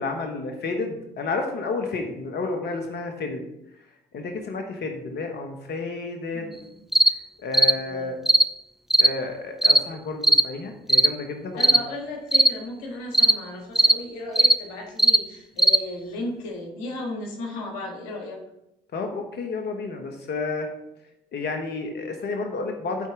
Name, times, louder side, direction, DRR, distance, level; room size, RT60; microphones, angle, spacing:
voice 1, 0.0-3.4 4.1-6.5 7.4-8.2 9.0-11.8 18.9-20.7 21.3-23.1, left 3 dB, 50° left, 4 dB, 1.2 m, -31 dB
voice 2, 6.3-6.7 7.7-8.1 11.5-18.4, left 2 dB, 80° left, 1 dB, 1.6 m, -35 dB
sound 1, 6.9-7.1 7.5-7.7 8.3-8.5 8.9-9.1 9.6-9.8 10.2-10.5 10.9-11.1 11.6-11.8 12.3-12.5 13.1-13.4 13.8-14.0 14.4-14.6 15.0-15.2 15.6-15.8, right 1 dB, ahead, 0.4 m, -17 dB
12.0 x 4.3 x 3.8 m, 0.85 s
hypercardioid pair, 60°, 21 cm